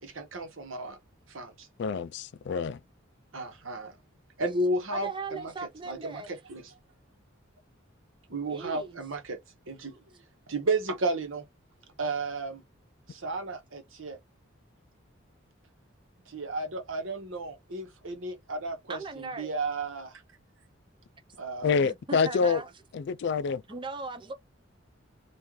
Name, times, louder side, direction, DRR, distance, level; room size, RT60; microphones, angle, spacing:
voice 1, 0.0-1.0 1.3-1.7 3.3-3.9 4.4-5.5 5.9-6.7 8.3-9.4 9.7-10.0 10.5-11.4 12.0-12.6 13.1-14.2 16.3-20.2 21.4-21.8, right 2 dB, 75° right, 1.0 m, -33 dB
voice 2, 1.8-2.8 21.6-22.6 22.9-23.6, left 5 dB, 55° left, 0.3 m, -27 dB
voice 3, 4.9-6.3 8.5-9.0 18.9-19.5 21.8-22.7 23.7-24.3, right 4 dB, 25° right, 0.5 m, -38 dB
3.6 x 2.5 x 3.0 m
head